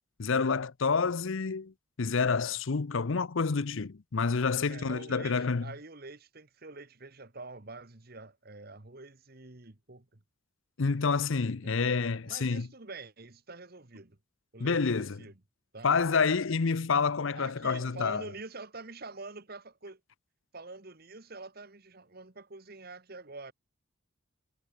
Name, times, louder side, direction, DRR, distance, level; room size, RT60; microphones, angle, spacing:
voice 1, 0.2-5.7 10.8-12.7 14.6-15.2 15.8-18.2, left 5 dB, 70° left, 0.7 m, -28 dB
voice 2, 4.7-10.2 11.6-14.2 14.5-15.3 15.7-15.9 17.3-20.0 20.5-23.5, right 3 dB, 45° right, 1.5 m, -46 dB
head